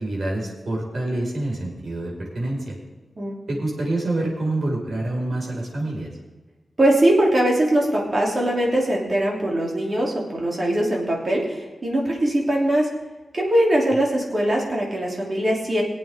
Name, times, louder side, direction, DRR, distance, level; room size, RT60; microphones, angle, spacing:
voice 1, 0.0-2.8 3.5-6.1, right 2 dB, 55° right, -3 dB, 5.1 m, -27 dB
voice 2, 6.8-12.9 13.3-15.8, right 1 dB, 35° right, -2 dB, 3.1 m, -21 dB
22.5 x 8.5 x 3.7 m, 1.2 s
wide cardioid pair, 165°, 0 cm